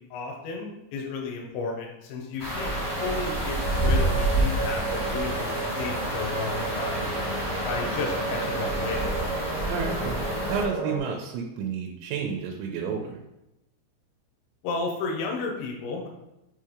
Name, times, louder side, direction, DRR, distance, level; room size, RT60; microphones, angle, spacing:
voice 1, 0.1-2.7 3.0-7.1 7.7-9.2 14.6-16.1, left 4 dB, 80° left, 0 dB, 3.0 m, -33 dB
sound 1, 2.4-10.6, right 1 dB, 50° left, 0.8 m, -29 dB
sound 2, 2.5-11.0, right 3 dB, 65° right, 1.7 m, -32 dB
voice 2, 9.7-10.2 10.5-13.2, right 6 dB, 85° right, 1 dB, 3.0 m, -31 dB
7.8 x 2.8 x 4.9 m, 0.92 s
omnidirectional pair, 5.2 m